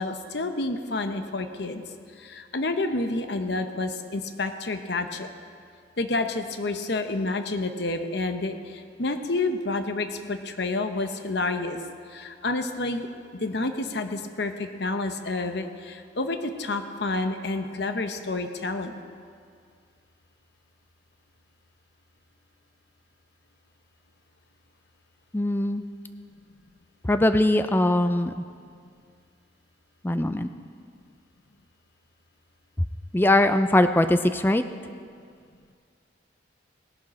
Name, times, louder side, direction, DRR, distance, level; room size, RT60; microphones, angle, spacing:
voice 1, 0.0-1.8 2.2-5.3 6.0-11.8 12.1-13.1 13.3-19.0, left 2 dB, 60° left, 7 dB, 0.9 m, -29 dB
voice 2, 25.3-25.8 27.1-28.3 30.0-30.5 33.1-34.6, left 1 dB, 10° left, 9 dB, 0.3 m, -21 dB
18.0 x 11.0 x 4.2 m, 2.2 s
head